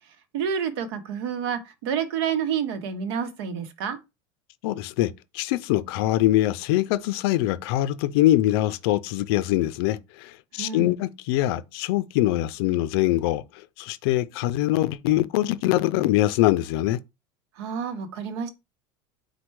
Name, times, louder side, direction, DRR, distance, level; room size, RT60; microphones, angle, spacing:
voice 1, 0.3-4.0 10.6-10.9 17.6-18.5, right 7 dB, 80° right, 0.9 m, -29 dB
voice 2, 4.6-17.0, left 15 dB, 70° left, 0.4 m, -23 dB
4.4 x 2.2 x 4.5 m
supercardioid pair, 145°, 13 cm